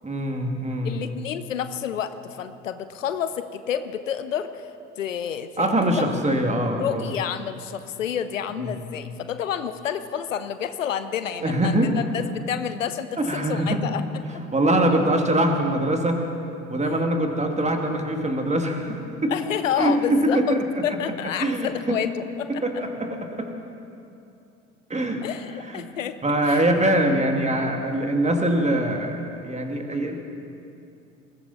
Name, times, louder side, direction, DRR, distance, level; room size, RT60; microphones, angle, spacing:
voice 1, 0.0-1.0 5.6-7.0 8.6-8.7 11.4-11.9 13.2-13.8 14.5-16.2 16.7-19.3 19.8-20.6 21.4-22.0 22.5-23.5 24.9-25.2 25.7-25.8 26.2-30.2, right 1 dB, 15° right, 3 dB, 2.3 m, -23 dB
voice 2, 0.8-4.7 5.0-5.7 5.9-6.1 6.8-13.1 13.3-14.0 19.3-22.6 25.2-26.7, left 9 dB, 80° left, 11 dB, 0.7 m, -29 dB
20.5 x 15.5 x 4.2 m, 2.6 s
figure-of-eight pair, 60°, 38 cm